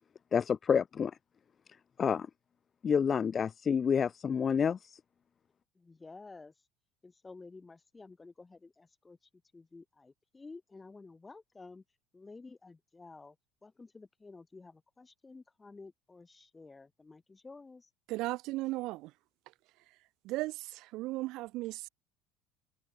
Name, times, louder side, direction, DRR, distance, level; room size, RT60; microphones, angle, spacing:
voice 1, 0.3-1.1 2.0-2.3 2.8-5.0, left 7 dB, 35° left, 0.4 m, -28 dB
voice 2, 5.7-6.5 7.0-11.8 12.1-13.4 13.6-17.9, left 3 dB, 15° left, 5.6 m, -52 dB
voice 3, 18.1-19.1 20.2-21.9, right 19 dB, 65° right, 0.5 m, -36 dB
supercardioid pair, 95°, 0 cm